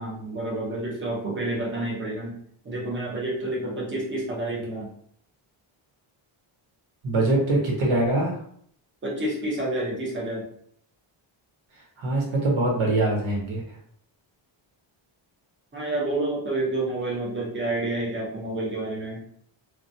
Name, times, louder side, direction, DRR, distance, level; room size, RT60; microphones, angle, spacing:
voice 1, 0.0-2.4 2.6-4.9 9.0-10.5 15.7-19.2, right 2 dB, 25° right, -3 dB, 0.7 m, -29 dB
voice 2, 7.0-8.4 12.0-13.6, right 2 dB, 75° right, -2 dB, 1.2 m, -23 dB
2.8 x 2.2 x 2.6 m, 0.64 s
wide cardioid pair, 175°, 49 cm